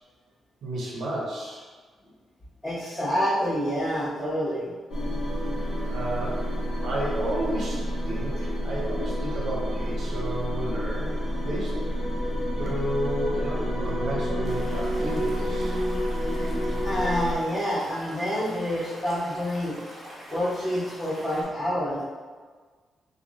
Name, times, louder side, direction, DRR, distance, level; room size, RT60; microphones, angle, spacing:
voice 1, 0.6-1.6 5.9-6.4 6.8-11.1 11.4-11.7 12.6-15.8, right 1 dB, 60° right, -4 dB, 0.7 m, -32 dB
voice 2, 2.6-4.7 8.9-9.1 16.8-19.7 20.3-22.0, equal, 10° left, -17 dB, 1.4 m, -27 dB
sound 1, 4.9-17.4, equal, 85° left, 0.7 m, -29 dB
Stream / Liquid, 14.4-21.4, equal, 25° right, 0.8 m, -44 dB
2.9 x 2.2 x 2.5 m, 1.5 s
cardioid pair, 125°, 0 cm